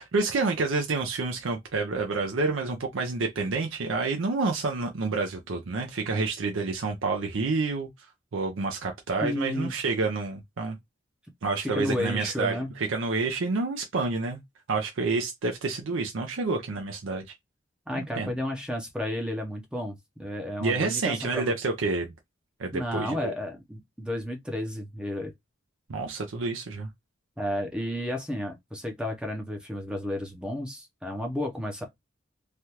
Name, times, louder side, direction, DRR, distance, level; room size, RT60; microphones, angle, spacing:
voice 1, 0.0-10.8 11.4-14.4 14.7-17.3 17.9-18.3 20.6-22.1 22.6-23.3 25.9-26.9, right 3 dB, 80° right, 0.5 m, -29 dB
voice 2, 9.2-9.8 11.6-12.8 17.9-21.5 22.7-25.3 27.4-31.8, left 1 dB, 5° right, 0.5 m, -32 dB
3.3 x 2.3 x 2.8 m
head